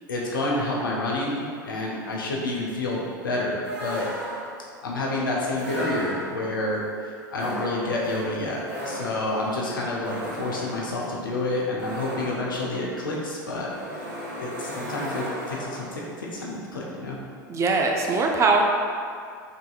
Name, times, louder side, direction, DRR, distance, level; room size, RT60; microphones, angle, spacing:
voice 1, 0.1-4.1 4.8-14.0 14.4-17.2, left 2 dB, 85° left, -4 dB, 0.6 m, -29 dB
sound 1, 3.6-4.7 5.5-6.6 7.3-16.0, right 1 dB, 55° right, 0.9 m, -36 dB
voice 2, 17.5-18.6, right 3 dB, 25° right, 1 dB, 0.4 m, -21 dB
3.5 x 2.6 x 2.3 m, 2.3 s
hypercardioid pair, 90°, 11 cm